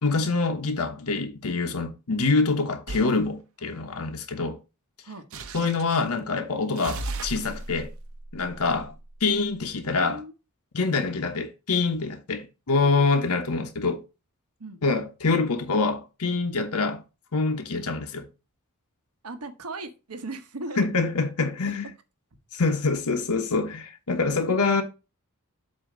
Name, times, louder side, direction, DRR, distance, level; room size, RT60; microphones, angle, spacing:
voice 1, 0.0-4.6 5.5-7.9 8.3-8.9 9.2-10.2 10.7-14.0 14.8-17.0 17.3-18.3 20.8-21.9 22.5-24.8, left 4 dB, 90° left, 1.0 m, -25 dB
sound 1, 2.9-3.2 5.3-6.0 6.8-9.4, right 2 dB, 65° right, 0.9 m, -36 dB
voice 2, 9.9-10.3 14.6-14.8 19.2-20.9, right 2 dB, 85° right, 1.1 m, -37 dB
7.7 x 2.8 x 6.0 m
head